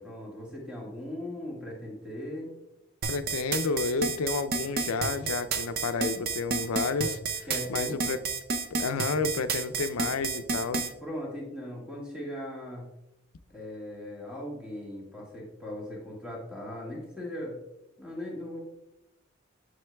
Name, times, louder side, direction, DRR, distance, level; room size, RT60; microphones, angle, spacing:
voice 1, 0.0-2.5 7.5-8.0 11.0-12.8 13.5-17.6 18.0-18.6, left 1 dB, 5° right, -3 dB, 1.5 m, -38 dB
sound 1, 3.0-10.9, right 4 dB, 45° right, 0.5 m, -30 dB
voice 2, 3.1-7.2 7.7-8.2 8.8-10.9, left 4 dB, 90° left, 12 dB, 0.4 m, -30 dB
7.6 x 6.2 x 2.2 m, 0.90 s
head